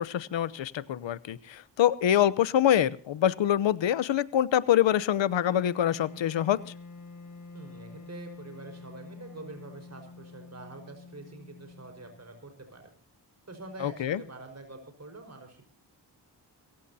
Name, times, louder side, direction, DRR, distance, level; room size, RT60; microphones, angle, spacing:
voice 1, 0.0-6.7 13.8-14.2, left 11 dB, 85° left, 18 dB, 0.9 m, -25 dB
Wind instrument woodwind instrument, 5.4-12.4, left 3 dB, 45° left, 2.0 m, -47 dB
voice 2, 7.5-12.9 13.4-15.7, right 2 dB, 35° right, 5 dB, 5.3 m, -46 dB
23.0 x 15.5 x 2.8 m, 0.41 s
cardioid pair, 60°, 44 cm